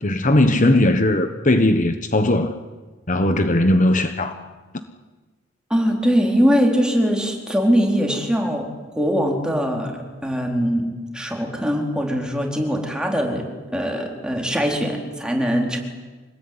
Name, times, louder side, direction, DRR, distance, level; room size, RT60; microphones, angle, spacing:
voice 1, 0.0-2.5 3.1-4.4, left 1 dB, 40° left, 8 dB, 1.3 m, -18 dB
voice 2, 5.7-8.7 9.0-13.4 13.7-15.8, equal, 5° right, 1 dB, 4.3 m, -21 dB
26.0 x 19.5 x 9.8 m, 1.3 s
head